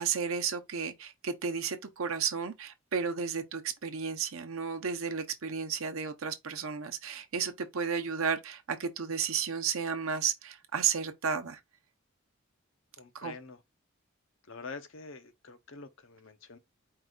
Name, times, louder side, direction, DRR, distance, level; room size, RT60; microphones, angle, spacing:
voice 1, 0.0-11.6 13.1-13.3, right 6 dB, 75° right, 0.8 m, -33 dB
voice 2, 13.0-13.6 14.5-16.6, left 4 dB, 65° left, 0.7 m, -46 dB
4.7 x 2.4 x 3.8 m
head